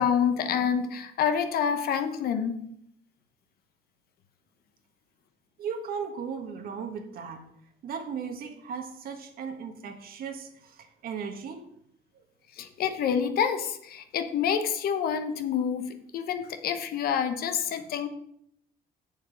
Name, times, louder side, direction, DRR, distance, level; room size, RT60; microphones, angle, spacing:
voice 1, 0.0-2.6 12.6-18.1, left 7 dB, 65° left, 8 dB, 0.9 m, -27 dB
voice 2, 5.6-7.4 7.8-11.7 12.1-12.2, right 6 dB, 60° right, 6 dB, 1.4 m, -37 dB
7.2 x 6.9 x 5.1 m, 0.73 s
cardioid pair, 110°, 17 cm